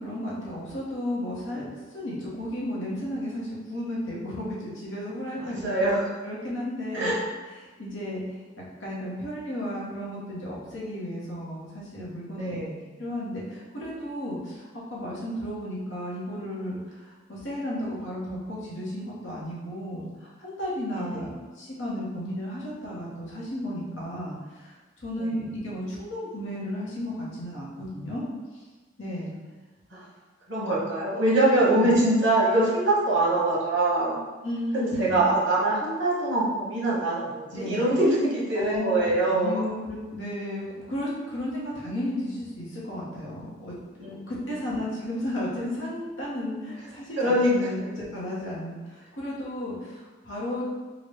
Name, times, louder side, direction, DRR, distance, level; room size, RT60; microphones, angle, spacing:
voice 1, 0.0-5.9 6.2-7.1 7.6-8.2 8.6-12.6 13.0-24.7 25.0-28.3 29.0-29.3 31.6-32.0 34.4-35.2 37.5-37.9 38.5-50.7, left 1 dB, 75° left, -6 dB, 1.1 m, -34 dB
voice 2, 5.4-6.1 6.9-7.2 12.3-12.9 21.0-21.1 25.2-25.4 29.9-30.1 30.5-34.2 34.7-39.6 44.0-44.3 47.2-47.5 47.8-47.9, right 1 dB, 70° right, -7 dB, 1.2 m, -24 dB
3.9 x 2.3 x 3.3 m, 1.3 s
head